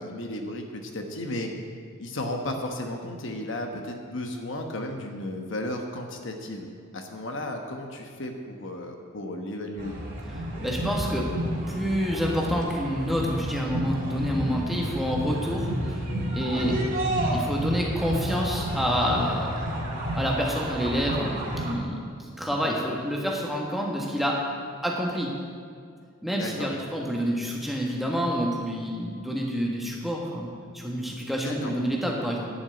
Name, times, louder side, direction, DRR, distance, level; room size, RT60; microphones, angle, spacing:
voice 1, 0.0-1.5 2.0-6.7 6.9-9.9 22.5-22.7 26.3-26.7 31.4-31.7, left 1 dB, 60° left, 3 dB, 1.1 m, -34 dB
sound 1, 9.8-21.7, right 1 dB, 40° right, 3.5 m, -30 dB
voice 2, 10.6-11.3 11.7-16.0 16.3-16.8 17.3-19.6 20.1-24.4 24.8-25.3 26.2-32.5, equal, ahead, -2 dB, 1.5 m, -28 dB
11.0 x 6.2 x 8.9 m, 2.2 s
head